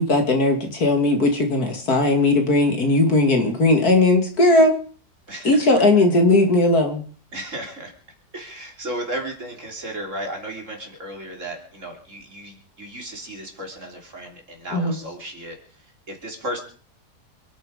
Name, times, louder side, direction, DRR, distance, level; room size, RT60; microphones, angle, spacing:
voice 1, 0.0-4.7 5.4-7.0 14.7-15.0, left 2 dB, 60° left, 4 dB, 2.8 m, -18 dB
voice 2, 5.3-5.8 7.3-7.9 8.3-16.6, right 1 dB, 45° right, 1 dB, 3.6 m, -34 dB
27.5 x 9.2 x 5.1 m, 0.43 s
omnidirectional pair, 1.8 m